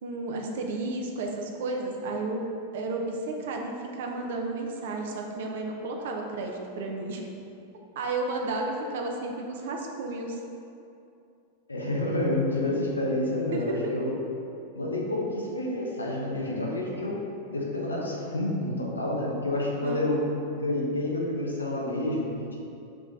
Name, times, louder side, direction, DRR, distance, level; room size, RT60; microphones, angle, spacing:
voice 1, 0.0-2.4 2.7-7.3 7.9-10.4 13.5-13.9 19.8-20.1, right 2 dB, 55° right, 1 dB, 0.7 m, -32 dB
voice 2, 11.7-14.2 14.7-17.2 17.5-20.2 20.5-22.6, left 1 dB, 80° left, -3 dB, 1.1 m, -29 dB
5.8 x 3.2 x 5.1 m, 2.7 s
figure-of-eight pair, 90°, 0 cm